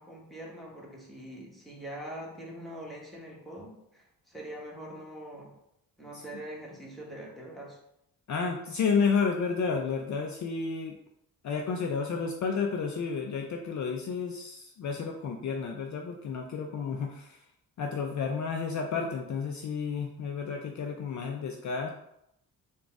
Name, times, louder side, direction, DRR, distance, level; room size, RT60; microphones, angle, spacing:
voice 1, 0.0-5.5 6.0-7.8, right 1 dB, ahead, -4 dB, 1.1 m, -43 dB
voice 2, 8.3-11.0 11.4-17.4 17.8-21.9, left 5 dB, 50° left, 2 dB, 0.5 m, -31 dB
3.8 x 2.3 x 3.5 m, 0.79 s
cardioid pair, 80°, 38 cm